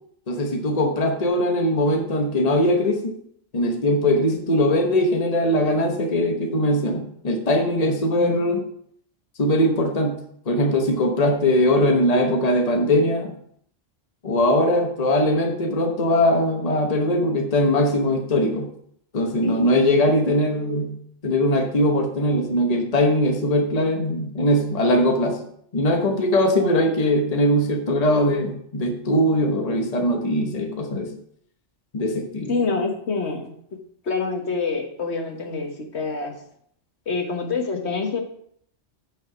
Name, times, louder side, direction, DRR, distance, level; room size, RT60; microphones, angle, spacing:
voice 1, 0.3-3.1 3.5-8.6 9.4-10.2 10.5-13.3 14.2-18.7 19.1-21.0 21.2-31.2 31.9-32.5, left 1 dB, 35° left, 3 dB, 1.1 m, -21 dB
voice 2, 32.5-33.5 34.0-36.3 37.1-38.2, left 4 dB, 65° left, 4 dB, 1.5 m, -26 dB
8.8 x 5.6 x 6.0 m, 0.66 s
omnidirectional pair, 1.2 m